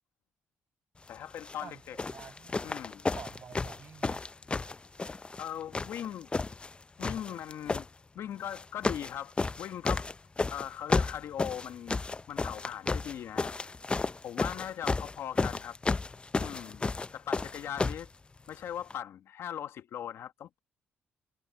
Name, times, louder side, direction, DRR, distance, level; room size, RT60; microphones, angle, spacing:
voice 1, 1.1-2.0 2.6-3.1 5.4-6.3 7.0-7.9 8.1-10.1 10.4-12.0 12.3-13.6 14.2-15.8 16.4-16.8 17.1-18.1 18.5-20.6, left 10 dB, 70° left, 1.5 m, -39 dB
sound 1, 1.3-1.6 2.0-5.5 5.7-6.7 7.0-7.9 8.5-9.1 9.4-18.1 18.9-19.0, left 3 dB, 25° left, 0.5 m, -32 dB
voice 2, 1.6-2.6 3.1-4.3, right 7 dB, 55° right, 6.2 m, -49 dB
cardioid pair, 80°, 5 cm